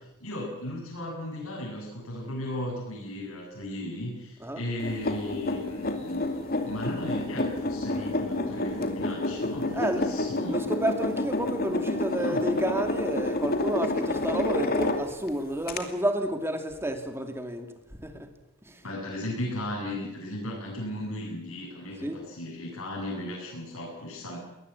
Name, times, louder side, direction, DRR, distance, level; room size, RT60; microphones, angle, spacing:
voice 1, 0.2-10.5 12.2-12.4 18.8-24.4, left 1 dB, 70° left, -3 dB, 7.8 m, -36 dB
sound 1, 4.8-15.3 15.7-15.8, left 2 dB, 45° left, 2.7 m, -29 dB
voice 2, 9.7-10.1 10.5-17.7 18.0-18.3 18.6-18.8 22.0-22.2, right 1 dB, 10° right, 6 dB, 2.6 m, -30 dB
22.0 x 19.0 x 8.5 m, 0.93 s
head